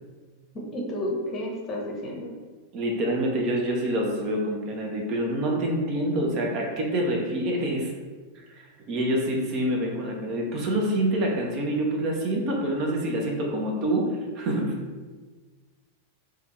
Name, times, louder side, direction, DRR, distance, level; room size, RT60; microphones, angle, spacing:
voice 1, 0.5-2.3, left 1 dB, 30° left, -2 dB, 0.7 m, -31 dB
voice 2, 2.7-7.9 8.3-8.4 8.9-14.1 14.3-14.8, right 1 dB, 40° right, -1 dB, 0.6 m, -26 dB
3.3 x 2.2 x 3.1 m, 1.4 s
figure-of-eight pair, 90°, 0 cm